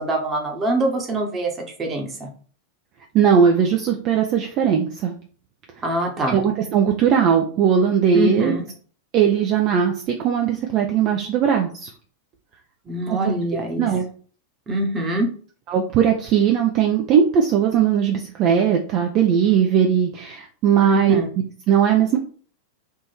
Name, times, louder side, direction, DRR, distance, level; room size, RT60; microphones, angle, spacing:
voice 1, 0.0-2.3 5.8-6.4 8.1-8.6 12.9-13.9 14.7-15.3 20.8-21.3, right 1 dB, 20° right, 2 dB, 1.1 m, -24 dB
voice 2, 3.1-5.2 6.3-8.5 9.1-11.9 13.1-13.3 13.8-14.0 15.7-21.2 21.7-22.2, right 8 dB, 40° right, 2 dB, 0.5 m, -19 dB
3.6 x 2.6 x 4.3 m, 0.43 s
figure-of-eight pair, 90°, 0 cm